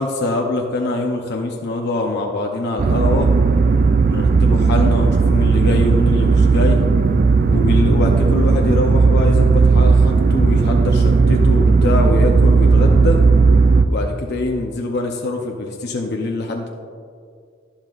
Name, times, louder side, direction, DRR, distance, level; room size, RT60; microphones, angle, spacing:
voice 1, 0.0-3.3 4.1-6.8 7.5-13.2 13.9-16.7, left 2 dB, 55° left, 1 dB, 0.7 m, -23 dB
sound 1, 2.8-13.9, right 4 dB, 45° right, 0.4 m, -14 dB
11.5 x 11.0 x 2.5 m, 2.2 s
head